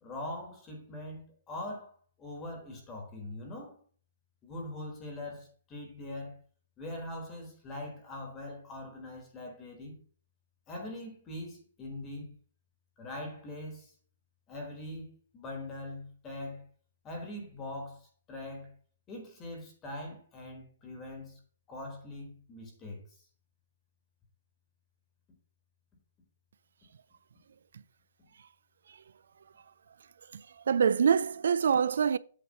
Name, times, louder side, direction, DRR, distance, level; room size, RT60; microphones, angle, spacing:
voice 1, 0.0-3.8 4.4-6.4 6.8-10.0 10.7-12.4 13.0-13.9 14.5-16.7 17.0-18.8 19.1-21.4 21.7-23.2, left 1 dB, 15° left, 1.4 m, -42 dB
voice 2, 30.3-32.2, right 7 dB, 70° right, 0.4 m, -25 dB
8.3 x 3.1 x 6.4 m
hypercardioid pair, 170°, 0 cm